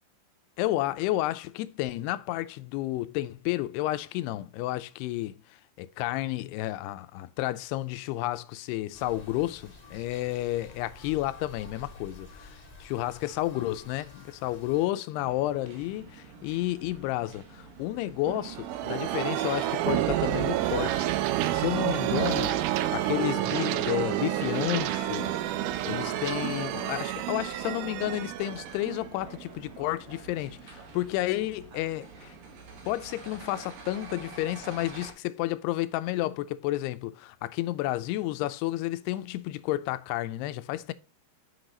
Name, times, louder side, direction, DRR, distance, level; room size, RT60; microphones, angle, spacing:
voice 1, 0.6-5.3 5.8-21.1 21.5-22.5 22.9-25.4 25.8-32.3 32.9-40.9, left 16 dB, 85° left, 2.7 m, -31 dB
sound 1, 8.9-14.9, left 2 dB, 20° left, 1.0 m, -49 dB
sound 2, 15.1-35.1, right 4 dB, 65° right, 3.3 m, -47 dB
sound 3, 18.3-29.8, right 13 dB, 80° right, 2.4 m, -29 dB
8.0 x 6.0 x 3.8 m
omnidirectional pair, 4.6 m